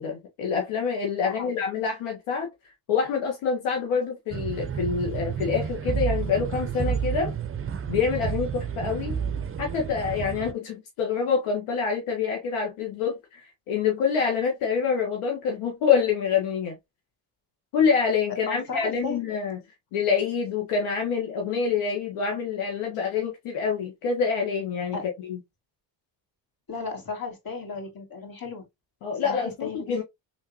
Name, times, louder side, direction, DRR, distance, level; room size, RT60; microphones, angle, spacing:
voice 1, 0.0-2.5 2.9-7.3 7.9-9.2 9.6-13.4 13.7-16.7 17.7-19.6 19.9-25.4 29.0-30.0, left 6 dB, 80° left, 1.1 m, -26 dB
voice 2, 1.2-1.5 18.5-19.2 24.9-25.0 26.7-28.6 29.2-29.9, left 4 dB, 45° left, 1.9 m, -34 dB
sound 1, 4.3-10.5, right 7 dB, 30° right, 0.5 m, -30 dB
3.4 x 2.8 x 2.8 m
supercardioid pair, 60°, 50 cm